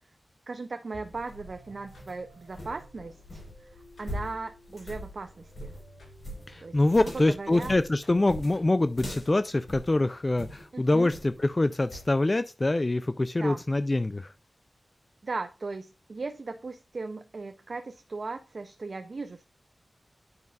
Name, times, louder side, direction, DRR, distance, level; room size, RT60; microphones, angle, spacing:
voice 1, 0.5-5.7 6.6-6.8 7.0-7.8 10.7-11.1 13.4-13.6 15.2-19.4, right 3 dB, 60° right, 0.5 m, -38 dB
sound 1, 0.9-9.0, equal, 90° left, 4.4 m, -54 dB
sound 2, 1.0-10.7 11.1-11.5 11.9-12.1, equal, 65° left, 4.4 m, -42 dB
voice 2, 6.5-14.3, left 2 dB, 30° left, 0.3 m, -25 dB
9.5 x 5.3 x 2.4 m
wide cardioid pair, 75°, 0 cm